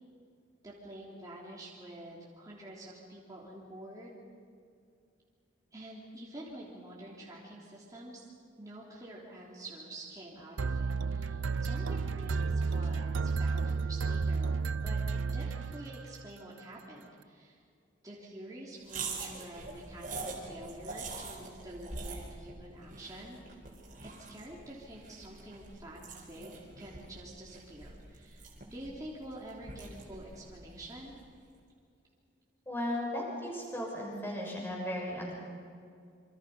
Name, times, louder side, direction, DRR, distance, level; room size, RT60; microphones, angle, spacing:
voice 1, 0.6-4.2 5.7-8.3 8.6-17.6 18.0-23.4 24.0-31.1, right 1 dB, 20° right, -5 dB, 3.3 m, -48 dB
sound 1, 10.6-16.3, right 4 dB, 75° right, 0.5 m, -32 dB
sound 2, 18.8-31.3, right 3 dB, 40° right, 4.4 m, -45 dB
voice 2, 32.7-35.3, left 1 dB, 10° left, -2 dB, 6.4 m, -36 dB
27.5 x 25.5 x 5.6 m, 2.3 s
head